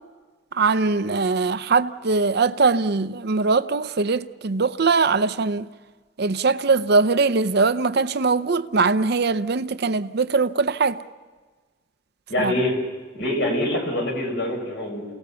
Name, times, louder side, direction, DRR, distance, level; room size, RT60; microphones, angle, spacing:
voice 1, 0.5-5.7 6.2-11.0 12.4-12.5, right 4 dB, 55° right, 0.7 m, -21 dB
voice 2, 12.3-12.7 13.1-15.1, left 1 dB, 60° left, 5.7 m, -25 dB
29.0 x 18.0 x 7.0 m
head